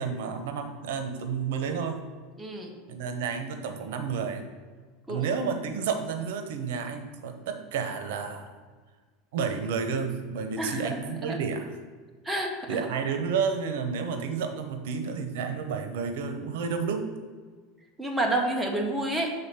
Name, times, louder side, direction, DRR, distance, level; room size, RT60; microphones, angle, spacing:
voice 1, 0.0-2.0 2.9-4.4 5.1-8.5 9.3-11.7 12.7-17.1, right 6 dB, 80° right, 7 dB, 0.8 m, -31 dB
voice 2, 2.4-2.8 5.1-5.3 10.6-11.4 12.2-12.8 18.0-19.3, right 1 dB, 5° right, 0 dB, 0.8 m, -29 dB
7.0 x 3.9 x 5.7 m, 1.5 s
supercardioid pair, 155°, 0 cm